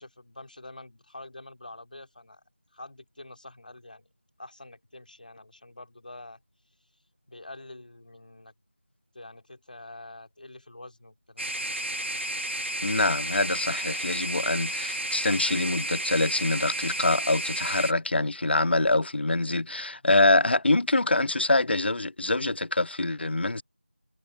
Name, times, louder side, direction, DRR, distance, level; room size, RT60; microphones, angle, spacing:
voice 1, 0.0-2.4 2.7-4.1 4.4-6.4 7.3-8.5 9.1-11.7, left 2 dB, 45° left, 3.5 m, -46 dB
sound 1, 11.4-17.9, right 1 dB, 80° right, 1.8 m, -32 dB
voice 2, 12.8-23.6, left 2 dB, 60° left, 0.4 m, -25 dB
figure-of-eight pair, 175°, 6 cm